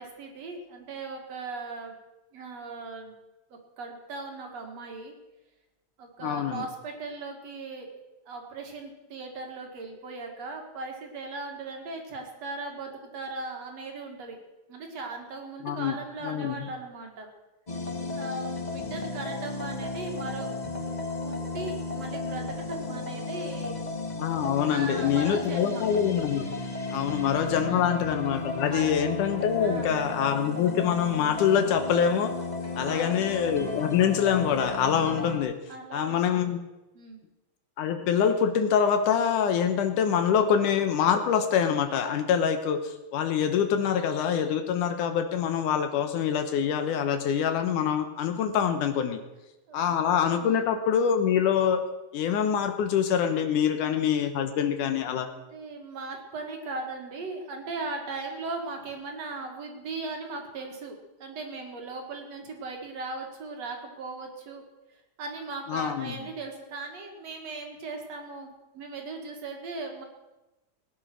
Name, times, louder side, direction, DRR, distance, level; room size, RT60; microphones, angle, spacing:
voice 1, 0.0-2.0 2.3-3.1 3.5-5.1 6.0-7.9 8.3-14.4 14.7-17.3 18.1-20.8 21.2-23.8 24.7-25.8 26.9-27.1 27.7-27.9 28.7-29.0 29.6-30.0 32.8-33.3 35.7-36.5 36.9-37.2 49.7-50.0 50.4-50.7 55.2-64.6 64.9-70.0, right 3 dB, 55° right, 2 dB, 3.1 m, -38 dB
voice 2, 6.2-6.6 15.6-16.0 16.2-16.6 24.2-26.5 26.9-32.3 32.8-35.5 35.9-36.6 37.8-49.2 49.7-51.9 52.1-55.3 65.7-66.2, left 8 dB, 80° left, 7 dB, 2.5 m, -25 dB
sound 1, 17.7-35.4, left 3 dB, 35° left, 0.6 m, -34 dB
19.0 x 10.0 x 6.2 m, 1.0 s
omnidirectional pair, 3.7 m